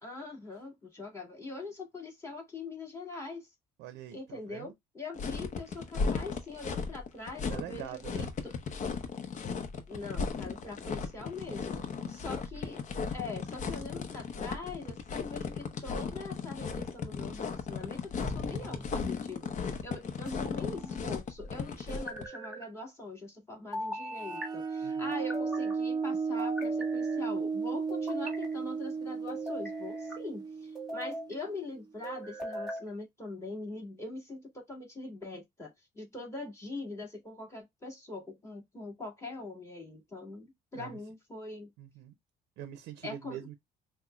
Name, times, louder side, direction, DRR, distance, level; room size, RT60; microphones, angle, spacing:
voice 1, 0.0-3.5 4.1-8.5 9.9-11.8 12.1-12.8 13.1-41.7 43.0-43.4, left 2 dB, 15° left, 1.9 m, -43 dB
voice 2, 3.8-4.7 7.5-8.3 12.0-12.1 24.8-25.1 40.7-41.0 41.8-42.1 42.6-43.6, right 11 dB, 90° right, 0.6 m, -44 dB
sound 1, 5.2-22.2, left 5 dB, 45° left, 0.8 m, -36 dB
sound 2, 18.2-18.9 20.3-21.0 21.9-22.6 23.7-24.5 25.1-25.8 26.4-27.2 27.9-28.5 29.3-30.2 30.7-31.3 32.0-32.8, equal, ahead, 1.8 m, -40 dB
sound 3, 24.2-31.6, right 5 dB, 25° right, 0.3 m, -34 dB
5.5 x 2.2 x 2.3 m
cardioid pair, 110°, 17 cm